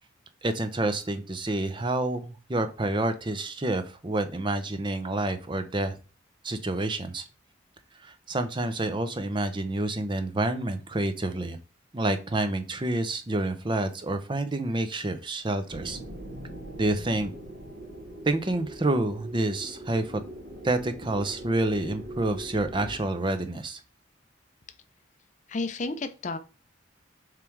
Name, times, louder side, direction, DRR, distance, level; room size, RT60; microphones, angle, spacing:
voice 1, 0.4-5.9 6.4-7.2 8.0-11.6 11.9-16.0 16.8-17.3 18.3-20.2 20.6-23.8, right 2 dB, 25° right, 8 dB, 0.6 m, -28 dB
sound 1, 15.7-23.0, right 1 dB, 60° right, 2.0 m, -42 dB
voice 2, 25.5-26.4, left 3 dB, 35° left, 10 dB, 0.5 m, -31 dB
7.1 x 3.3 x 4.6 m, 0.33 s
head